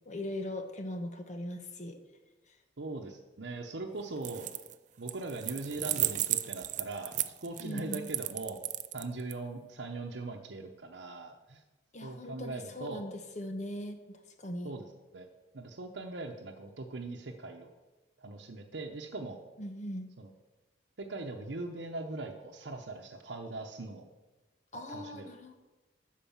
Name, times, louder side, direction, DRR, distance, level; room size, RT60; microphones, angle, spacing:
voice 1, 0.1-2.0 7.6-8.1 11.9-14.7 19.6-20.1 24.7-25.5, left 1 dB, 40° left, 6 dB, 1.1 m, -40 dB
voice 2, 2.8-4.5 5.0-8.6 8.9-11.6 12.0-13.0 14.6-14.9 15.1-15.3 15.5-17.7 18.2-19.4 20.2-20.3 21.0-24.1 24.7-25.3, right 2 dB, 80° right, 2 dB, 0.8 m, -40 dB
sound 1, 4.2-4.7 5.1-9.3, right 14 dB, 40° right, 0.4 m, -34 dB
12.5 x 4.8 x 7.2 m, 1.2 s
head